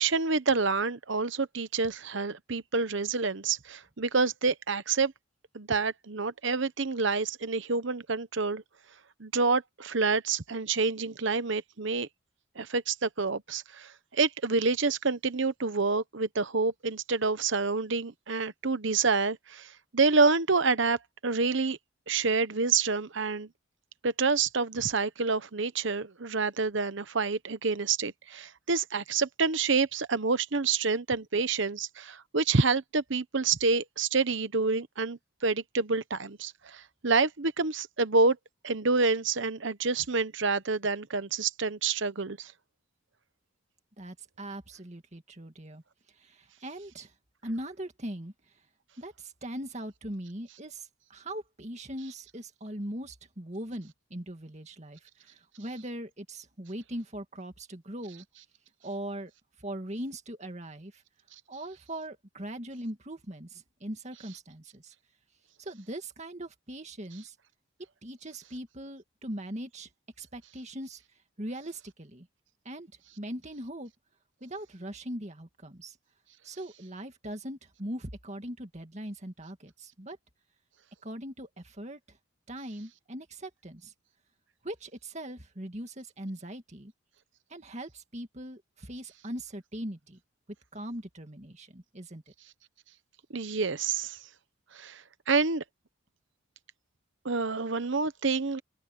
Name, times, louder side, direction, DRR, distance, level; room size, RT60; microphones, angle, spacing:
voice 1, 0.0-5.1 5.5-8.6 9.2-12.1 12.6-21.8 22.1-23.5 24.0-38.4 38.6-42.5 93.3-94.2 94.8-95.0 95.3-95.6 97.2-98.6, right 4 dB, 60° right, 1.0 m, -28 dB
voice 2, 44.0-45.8 46.2-47.1 47.4-48.3 49.0-58.2 58.8-59.3 59.6-61.0 61.5-64.9 65.6-67.4 68.0-69.9 70.2-71.0 71.4-72.3 72.7-72.9 73.2-73.9 74.4-76.0 76.4-80.2 81.0-82.0 82.5-83.9 84.6-86.9 87.5-90.2 90.7-92.2, right 1 dB, 35° right, 2.2 m, -40 dB
open air
head